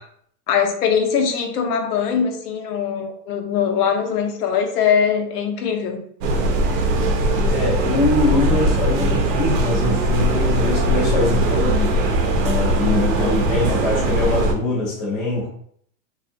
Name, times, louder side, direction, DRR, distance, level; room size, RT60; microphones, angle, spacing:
voice 1, 0.5-6.0, left 7 dB, 70° left, 4 dB, 0.7 m, -21 dB
sound 1, 6.2-14.5, right 1 dB, 80° right, 0.7 m, -20 dB
voice 2, 7.4-12.0 12.4-15.5, left 2 dB, 20° left, -6 dB, 0.3 m, -23 dB
2.5 x 2.3 x 2.5 m, 0.64 s
supercardioid pair, 140°, 49 cm